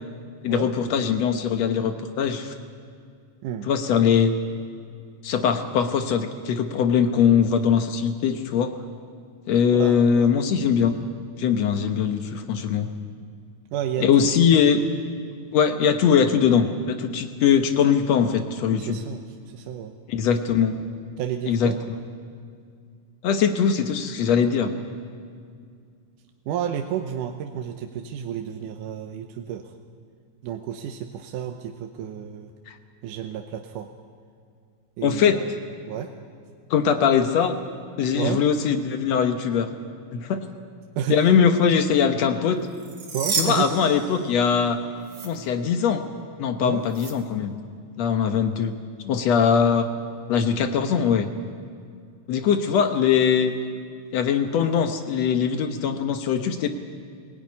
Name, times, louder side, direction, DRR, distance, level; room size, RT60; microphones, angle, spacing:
voice 1, 0.4-2.5 3.7-4.4 5.2-8.7 9.5-11.0 11.4-12.9 14.0-14.8 15.5-19.0 20.1-20.8 21.5-21.7 23.2-24.7 32.7-32.8 35.0-35.4 36.7-37.5 38.0-39.7 40.1-40.4 41.1-42.6 43.3-44.8 45.2-46.0 46.4-47.5 48.0-48.7 49.0-49.9 50.3-51.3 52.3-53.5 54.1-56.7, left 7 dB, 65° left, 7 dB, 1.9 m, -21 dB
voice 2, 9.7-10.3 13.7-14.3 18.8-19.9 21.2-21.8 26.5-29.7 30.4-32.5 33.0-33.9 35.0-35.5 35.9-36.1 38.1-38.4 41.0-41.2 43.1-43.7 46.6-46.9, right 9 dB, 85° right, 5 dB, 2.4 m, -31 dB
sound 1, 42.7-44.7 45.0-45.3 46.9-47.1, right 5 dB, 45° right, 3.4 m, -31 dB
21.0 x 16.5 x 9.7 m, 2.2 s
omnidirectional pair, 3.7 m